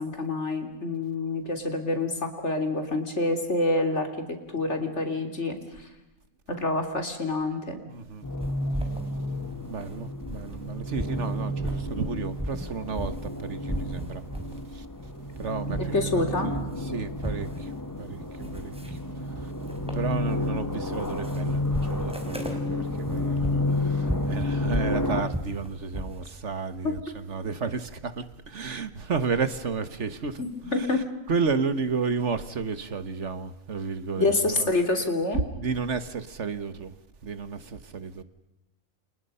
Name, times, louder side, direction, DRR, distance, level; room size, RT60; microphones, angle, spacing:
voice 1, 0.0-5.9 6.5-7.8 15.9-16.5 30.4-31.0 34.2-35.4, left 2 dB, 55° left, 3.6 m, -27 dB
voice 2, 7.9-8.2 9.6-14.2 14.7-14.9 15.4-17.7 18.0-19.5 19.9-34.7 35.5-36.9 37.2-38.2, right 5 dB, 60° right, 1.6 m, -32 dB
sound 1, 8.2-25.2, left 1 dB, 15° left, 1.7 m, -31 dB
sound 2, 8.4-10.6 10.9-13.4 13.7-14.6 15.0-16.1 16.4-26.2, equal, 5° right, 4.3 m, -37 dB
30.0 x 28.0 x 5.6 m
omnidirectional pair, 1.4 m